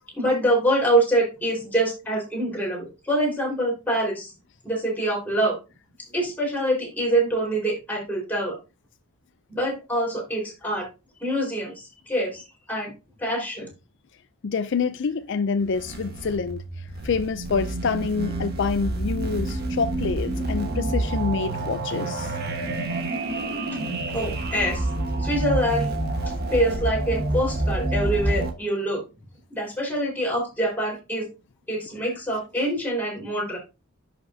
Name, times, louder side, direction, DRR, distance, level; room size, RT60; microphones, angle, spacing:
voice 1, 0.1-4.3 4.6-5.6 6.1-8.6 9.5-10.9 11.2-12.9 13.2-13.7 24.1-24.9 25.2-25.9 26.5-29.0 29.5-31.3 31.7-33.6, right 1 dB, 10° left, 4.5 m, -25 dB
voice 2, 14.4-16.6 17.0-22.3, left 5 dB, 55° left, 0.4 m, -26 dB
sound 1, 15.6-28.5, right 2 dB, 45° right, 1.4 m, -28 dB
10.5 x 6.4 x 2.7 m
head